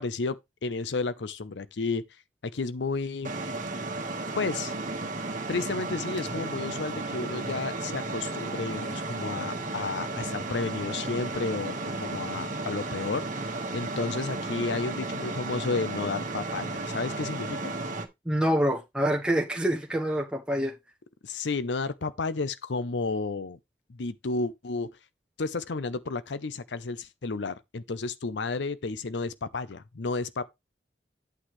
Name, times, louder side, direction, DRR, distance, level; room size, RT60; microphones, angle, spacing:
voice 1, 0.0-2.0 2.4-3.3 4.4-4.7 5.5-17.7 21.2-23.6 23.9-24.9 25.4-30.4, left 3 dB, 75° left, 0.6 m, -32 dB
sound 1, 3.2-18.1, right 2 dB, 45° right, 1.5 m, -34 dB
voice 2, 18.2-20.7, equal, 5° right, 1.2 m, -26 dB
8.9 x 7.6 x 3.1 m
head